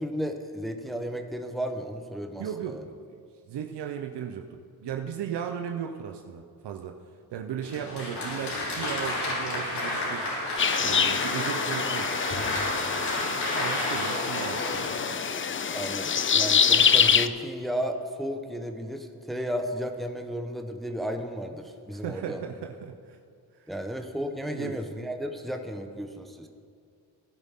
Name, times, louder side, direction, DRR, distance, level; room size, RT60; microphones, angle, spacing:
voice 1, 0.0-2.8 15.7-22.4 23.7-26.5, equal, ahead, 5 dB, 1.0 m, -33 dB
voice 2, 2.4-2.8 3.5-7.0 7.3-10.2 10.8-12.3 13.5-14.8 21.9-23.2 23.5-23.7 24.5-24.7, right 8 dB, 85° right, 3 dB, 0.8 m, -36 dB
Applause, 7.6-15.7, left 1 dB, 80° left, 3.6 m, -31 dB
sound 1, 10.6-17.3, left 7 dB, 30° left, 0.5 m, -25 dB
16.0 x 10.5 x 3.7 m, 2.3 s
cardioid pair, 75°, 40 cm